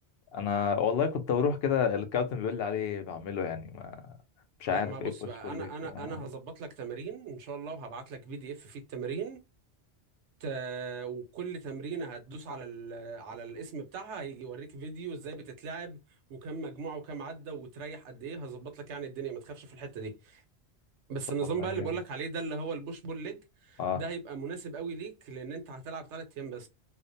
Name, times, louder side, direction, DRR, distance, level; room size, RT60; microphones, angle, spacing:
voice 1, 0.3-4.2 4.6-5.1 5.4-6.2 21.6-21.9 23.8-24.0, left 7 dB, 65° left, 0.8 m, -30 dB
voice 2, 4.7-9.4 10.4-16.0 16.3-20.4 21.1-26.7, right 5 dB, 90° right, 1.0 m, -38 dB
2.4 x 2.1 x 2.5 m
omnidirectional pair, 1.1 m